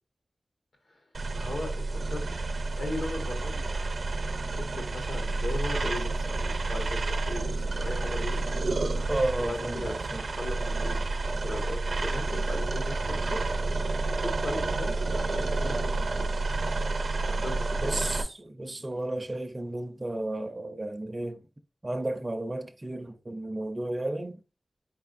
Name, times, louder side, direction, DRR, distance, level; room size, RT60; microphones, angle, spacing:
sound 1, 1.1-18.2, right 3 dB, 75° right, 0.6 m, -30 dB
voice 1, 1.3-2.3 2.8-3.6 4.6-8.6 9.4-9.9 10.2-13.5 14.1-16.4 17.3-18.1, left 1 dB, 80° left, 1.3 m, -38 dB
voice 2, 9.1-10.2 17.8-21.4 21.8-24.4, right 1 dB, 30° right, 0.4 m, -33 dB
4.3 x 3.3 x 2.4 m
wide cardioid pair, 105°, 0 cm